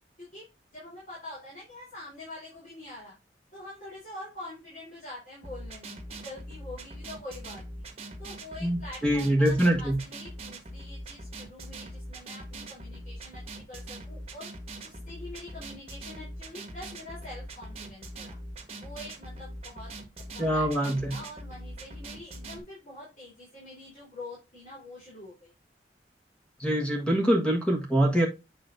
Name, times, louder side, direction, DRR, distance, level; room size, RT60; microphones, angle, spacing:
voice 1, 0.7-3.2 3.5-7.9 8.2-14.5 14.8-18.4 18.7-19.9 20.3-25.5, left 1 dB, 45° left, 3.8 m, -45 dB
sound 1, 5.4-22.6, right 1 dB, 35° right, 1.4 m, -42 dB
voice 2, 8.6-10.0 20.4-21.1 26.6-28.3, right 1 dB, 5° left, 1.5 m, -24 dB
8.4 x 5.1 x 2.7 m
head